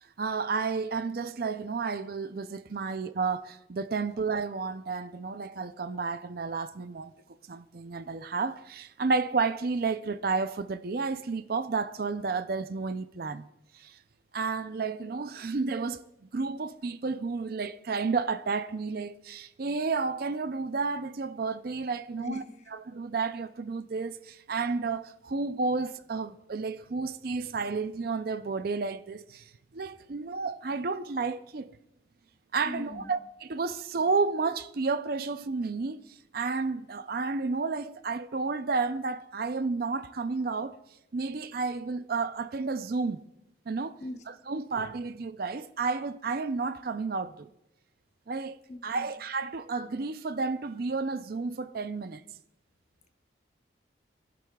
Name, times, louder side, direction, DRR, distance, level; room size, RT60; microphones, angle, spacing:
voice 1, 0.2-7.1 7.5-13.4 13.7-14.0 14.3-16.1 16.3-22.4 22.9-31.7 32.5-36.0 36.3-40.8 41.1-43.2 43.7-44.0 44.3-47.5 48.3-52.2, right 4 dB, 50° right, 0.5 m, -31 dB
voice 2, 32.6-33.1 44.0-44.2 48.7-49.1, left 2 dB, 35° left, 0.9 m, -40 dB
27.0 x 11.0 x 2.3 m
head